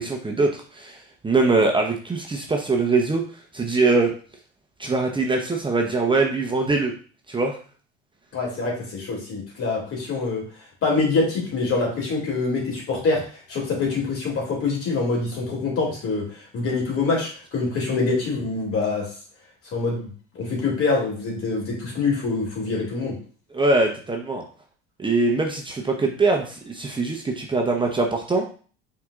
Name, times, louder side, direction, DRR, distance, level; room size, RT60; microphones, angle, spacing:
voice 1, 0.0-3.2 3.5-4.1 4.8-6.9 7.3-7.6 23.5-24.4 25.0-28.5, right 3 dB, 15° right, 1 dB, 0.8 m, -22 dB
voice 2, 8.3-10.4 10.8-13.2 13.5-19.1 19.7-23.2, left 3 dB, 50° left, -1 dB, 2.5 m, -25 dB
5.8 x 3.9 x 2.4 m, 0.41 s
hypercardioid pair, 70°, 29 cm